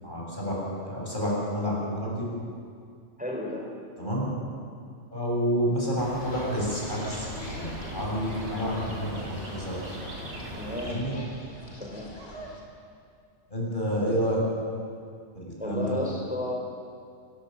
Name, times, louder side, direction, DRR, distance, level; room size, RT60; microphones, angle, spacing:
voice 1, 0.0-0.5 0.8-2.2 4.0-4.2 5.1-9.8 10.8-11.1 13.5-14.4 15.3-16.0, equal, 45° left, -4 dB, 7.6 m, -29 dB
voice 2, 3.2-3.7 10.5-11.0 11.8-12.1 15.6-16.5, left 1 dB, 5° right, -2 dB, 4.0 m, -32 dB
sound 1, 6.0-10.9, equal, 65° right, 5.3 m, -39 dB
sound 2, 6.2-12.6, left 1 dB, 90° left, 4.5 m, -44 dB
28.0 x 17.5 x 8.1 m, 2.3 s
omnidirectional pair, 1.2 m